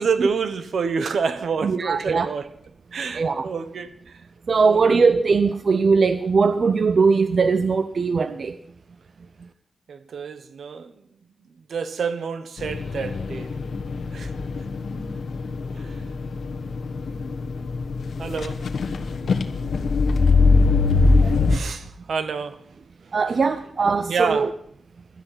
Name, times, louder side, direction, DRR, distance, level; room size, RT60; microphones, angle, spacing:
voice 1, 0.0-2.5 2.9-4.2 4.6-4.9 9.9-10.9 11.7-13.5 14.1-14.3 15.7-16.0 18.2-18.6 21.0-22.6 24.1-24.5, right 5 dB, 75° right, 1.1 m, -28 dB
voice 2, 1.6-2.3 3.1-3.5 4.5-8.6 21.2-21.3 23.1-24.5, right 4 dB, 50° right, 0.6 m, -20 dB
sound 1, 12.6-21.6, left 3 dB, 70° left, 1.2 m, -22 dB
16.5 x 12.5 x 5.8 m
wide cardioid pair, 160°, 0 cm